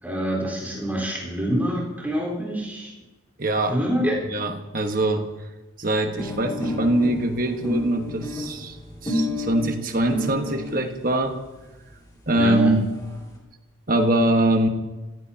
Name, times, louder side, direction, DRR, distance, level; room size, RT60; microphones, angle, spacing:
voice 1, 0.0-2.9 3.7-4.1 12.4-12.7, right 1 dB, 10° right, -4 dB, 4.2 m, -26 dB
voice 2, 3.4-3.8 4.3-5.3 5.8-8.8 9.0-11.3 12.3-12.8 13.9-14.7, right 1 dB, 40° right, 5 dB, 1.4 m, -23 dB
sound 1, 6.2-10.8 11.6-11.7 11.9-12.0 12.3-12.4 12.6-13.2, left 1 dB, 15° left, 2.4 m, -30 dB
28.0 x 15.5 x 2.9 m, 1.1 s
head